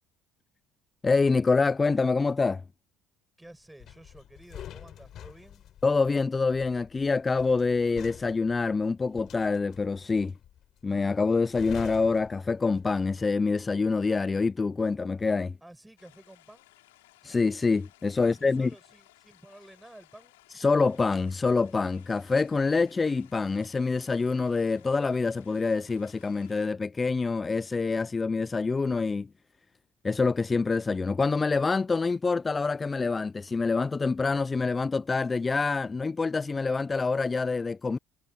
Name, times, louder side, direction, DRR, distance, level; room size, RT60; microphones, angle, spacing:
voice 1, 1.0-2.6 5.8-10.3 10.8-15.5 17.2-18.7 20.5-29.3 30.0-38.0, left 4 dB, 25° left, 0.4 m, -26 dB
voice 2, 3.4-5.7 15.6-16.7 18.2-20.4 37.9-38.0, right 1 dB, 10° right, 6.7 m, -52 dB
sound 1, 3.8-13.1 13.4-13.7, left 11 dB, 60° left, 4.3 m, -47 dB
sound 2, 16.0-26.7, left 19 dB, 85° left, 4.2 m, -59 dB
hypercardioid pair, 65°, 0 cm